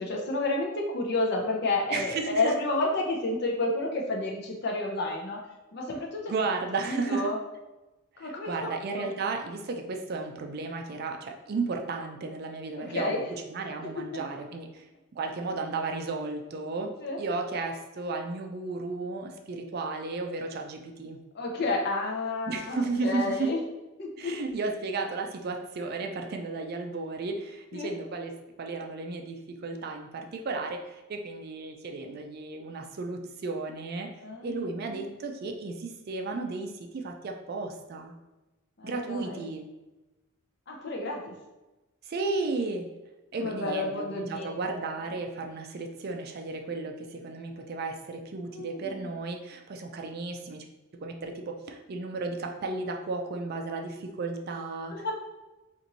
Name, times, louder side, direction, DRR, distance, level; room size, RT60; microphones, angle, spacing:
voice 1, 0.0-5.4 5.7-6.3 6.9-7.4 8.2-9.1 12.8-13.3 13.8-14.2 17.0-17.2 21.3-23.6 24.0-24.3 27.7-27.9 34.2-35.1 38.8-39.5 40.7-41.3 43.4-45.0 48.5-49.1 54.9-55.1, left 2 dB, 50° left, 0 dB, 0.6 m, -31 dB
voice 2, 1.9-2.5 6.3-7.3 8.2-13.2 13.5-14.8 15.1-16.9 17.2-21.2 22.5-23.5 24.2-28.3 28.6-34.1 34.4-38.1 38.8-39.6 42.1-42.9 43.3-50.6 51.0-55.1, right 3 dB, 50° right, 3 dB, 0.4 m, -34 dB
2.9 x 2.5 x 3.9 m, 1.1 s
head